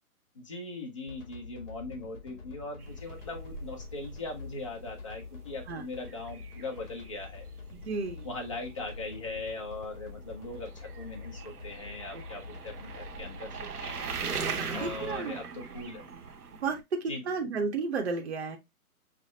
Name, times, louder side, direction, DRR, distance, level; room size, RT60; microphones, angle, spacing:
voice 1, 0.3-7.4 8.2-14.1 14.7-16.0 17.1-17.2, left 2 dB, 20° left, 0.6 m, -40 dB
sound 1, 1.1-15.2, left 4 dB, 55° left, 1.5 m, -46 dB
sound 2, 2.8-16.8, right 5 dB, 90° right, 1.1 m, -41 dB
voice 2, 7.7-8.3 12.1-12.2 14.6-15.4 16.6-18.6, right 4 dB, 45° right, 0.8 m, -33 dB
5.8 x 2.1 x 3.2 m
hypercardioid pair, 165°, 45 cm